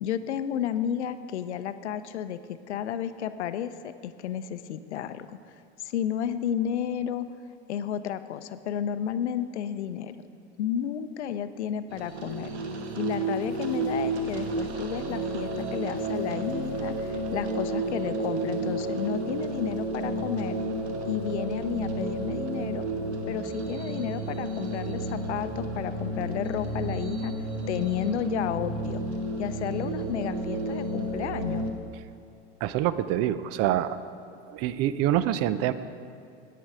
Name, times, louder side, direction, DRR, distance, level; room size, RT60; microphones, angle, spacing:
voice 1, 0.0-7.3 7.7-10.2 10.6-12.5 13.0-20.6 21.1-22.8 23.3-27.3 27.7-29.0 29.4-31.7, left 9 dB, 80° left, 12 dB, 0.6 m, -32 dB
sound 1, 11.9-31.7, right 2 dB, 75° right, 1.3 m, -31 dB
voice 2, 32.6-34.0 34.5-35.7, right 12 dB, 45° right, 14 dB, 0.6 m, -26 dB
10.0 x 9.3 x 4.9 m, 2.5 s
hypercardioid pair, 80°, 34 cm